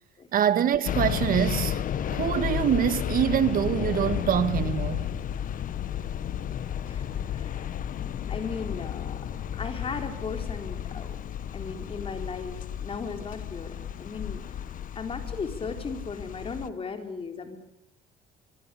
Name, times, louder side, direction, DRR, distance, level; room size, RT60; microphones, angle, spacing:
voice 1, 0.3-1.8 2.1-5.1, right 9 dB, 55° right, 1.7 m, -25 dB
sound 1, 0.9-16.7, left 9 dB, 55° left, 1.3 m, -32 dB
voice 2, 6.8-7.7 8.3-9.2 9.5-11.2 11.5-14.4 15.0-17.6, left 4 dB, 35° left, 4.0 m, -36 dB
24.5 x 24.0 x 8.5 m
cardioid pair, 110°, 17 cm